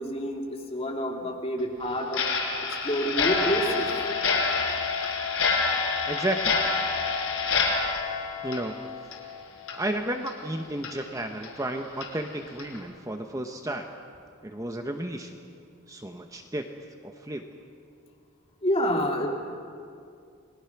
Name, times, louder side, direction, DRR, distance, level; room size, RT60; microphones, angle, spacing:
voice 1, 0.0-2.2 2.8-3.9 18.6-19.3, equal, 30° left, 0 dB, 2.7 m, -28 dB
Clock, 2.1-9.3 9.6-9.8 10.3-10.4 10.8-10.9 11.4-11.5 12.0-12.1 12.6-12.8, left 5 dB, 85° left, 4.7 m, -27 dB
voice 2, 6.1-6.6 8.4-8.8 9.7-13.9 14.4-15.4 15.9-16.7 17.0-17.5, right 1 dB, 15° right, 4 dB, 0.9 m, -32 dB
29.5 x 21.0 x 6.0 m, 2.3 s
head